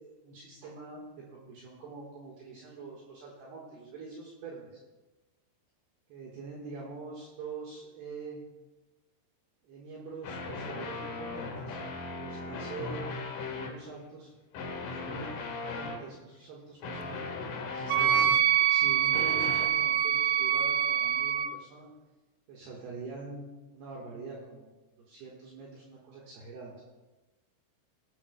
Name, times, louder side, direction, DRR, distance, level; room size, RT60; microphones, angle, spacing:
voice 1, 0.0-4.8 6.1-8.4 9.6-11.8 12.1-13.0 13.4-14.3 14.8-15.4 15.6-17.1 17.7-18.4 18.7-21.9 22.5-23.4 23.7-24.7 25.0-26.8, right 4 dB, 65° right, -4 dB, 3.1 m, -44 dB
sound 1, 10.2-13.8 14.5-16.1 16.8-18.5 19.1-19.7, left 3 dB, 70° left, 2.0 m, -38 dB
Wind instrument woodwind instrument, 17.9-21.5, right 10 dB, 80° right, 2.9 m, -25 dB
19.5 x 10.0 x 2.2 m, 1.1 s
omnidirectional pair, 5.5 m